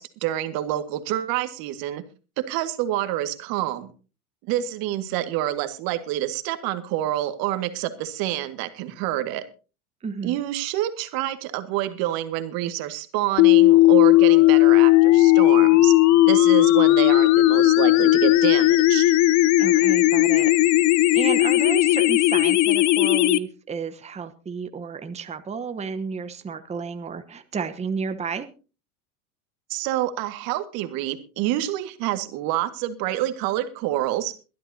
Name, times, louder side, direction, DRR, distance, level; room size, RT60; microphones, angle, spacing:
voice 1, 0.0-2.0 2.5-3.9 4.5-9.4 10.2-15.9 16.3-19.1 29.7-34.3, right 13 dB, 55° right, 9 dB, 1.9 m, -27 dB
voice 2, 10.0-10.4 19.6-20.5 21.1-28.5, right 5 dB, 15° right, 9 dB, 1.1 m, -32 dB
sound 1, 13.4-23.4, left 17 dB, 40° left, 0.7 m, -16 dB
22.5 x 11.5 x 2.8 m, 0.34 s
supercardioid pair, 110°, 43 cm